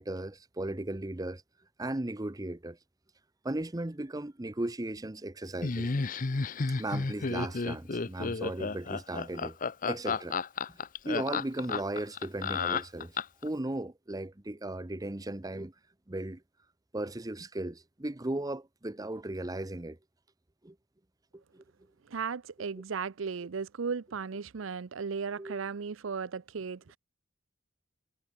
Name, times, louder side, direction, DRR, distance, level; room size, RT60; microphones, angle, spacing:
voice 1, 0.0-1.4 1.8-2.8 3.4-5.9 6.7-9.6 9.9-10.4 10.7-10.8 11.0-13.2 13.4-15.7 16.1-16.4 16.9-20.0 20.6-20.8 21.3-21.6 25.4-25.6, right 1 dB, 20° right, 0.8 m, -36 dB
Laughter, 5.6-13.5, left 4 dB, 45° left, 0.7 m, -32 dB
voice 2, 22.1-27.0, right 5 dB, 90° right, 0.6 m, -36 dB
head